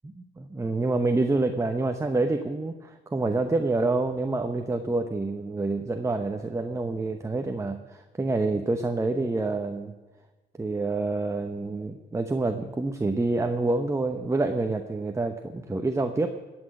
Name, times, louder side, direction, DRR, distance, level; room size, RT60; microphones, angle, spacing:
voice 1, 0.2-9.9 10.6-16.3, right 2 dB, 15° right, 6 dB, 0.9 m, -27 dB
18.0 x 6.2 x 8.8 m, 1.2 s
cardioid pair, 90°, 20 cm